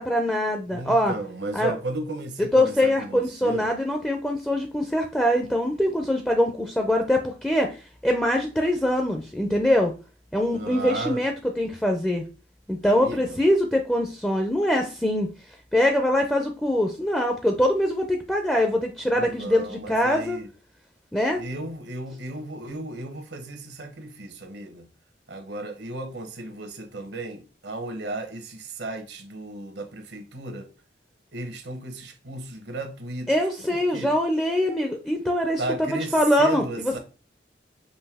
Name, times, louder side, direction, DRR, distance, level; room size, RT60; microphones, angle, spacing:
voice 1, 0.0-1.1 1.5-1.7 2.5-9.9 10.3-12.2 12.7-15.3 15.7-20.4 21.1-21.4 33.3-37.0, left 1 dB, 5° left, 0.4 m, -23 dB
voice 2, 0.7-3.7 10.5-11.2 12.8-13.4 19.1-20.5 21.3-24.9 25.3-30.7 31.3-34.1 35.6-37.0, right 2 dB, 75° right, 1.0 m, -35 dB
5.4 x 2.6 x 3.4 m
head